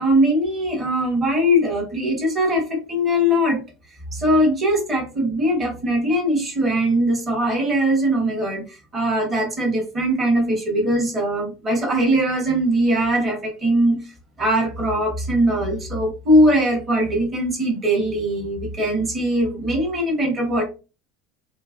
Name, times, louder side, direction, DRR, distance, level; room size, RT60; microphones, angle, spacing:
voice 1, 0.0-3.6 4.1-14.0 14.4-20.6, equal, 20° right, 0 dB, 1.4 m, -21 dB
5.3 x 2.5 x 2.6 m, 0.31 s
cardioid pair, 165°, 0 cm